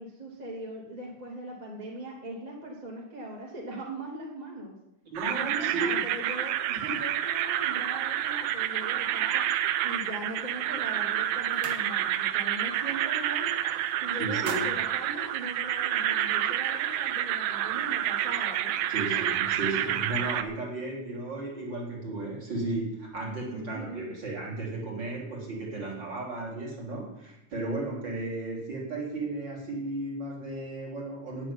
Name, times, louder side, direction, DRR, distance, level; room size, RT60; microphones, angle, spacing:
voice 1, 0.0-4.8 5.3-9.4 9.8-13.6 14.0-18.8 23.5-24.1, right 1 dB, 15° right, -3 dB, 2.4 m, -40 dB
voice 2, 5.1-6.0 14.2-14.8 18.9-31.5, right 2 dB, 35° right, -2 dB, 4.0 m, -34 dB
sound 1, 5.2-20.4, right 11 dB, 85° right, 1.4 m, -29 dB
sound 2, 10.6-10.9 11.2-12.3 12.7-13.0 13.3-13.8 14.2-16.0, right 5 dB, 55° right, 2.1 m, -43 dB
10.0 x 8.7 x 9.7 m, 0.87 s
omnidirectional pair, 3.6 m